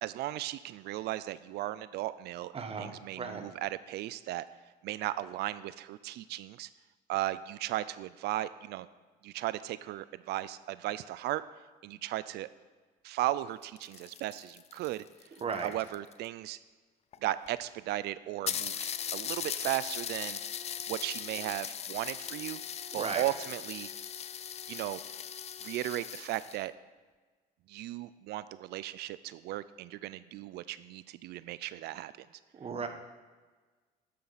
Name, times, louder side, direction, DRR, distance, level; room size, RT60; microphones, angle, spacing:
voice 1, 0.0-2.5 2.8-4.5 4.8-6.7 7.1-8.9 9.2-11.4 11.8-12.5 13.0-15.0 15.6-16.6 17.2-20.4 20.9-22.6 22.9-23.9 24.7-25.0 25.6-26.7 27.7-32.3, right 15 dB, 75° right, 16 dB, 0.4 m, -36 dB
voice 2, 2.5-3.5 15.4-15.7 22.9-23.2 32.5-32.9, right 5 dB, 35° right, 7 dB, 1.2 m, -36 dB
sound 1, 13.5-16.3 17.1-17.2 17.5-17.6 17.9-18.0 18.5-26.6, left 8 dB, 40° left, 0.5 m, -39 dB
11.5 x 8.6 x 4.1 m, 1.3 s
cardioid pair, 110°, 17 cm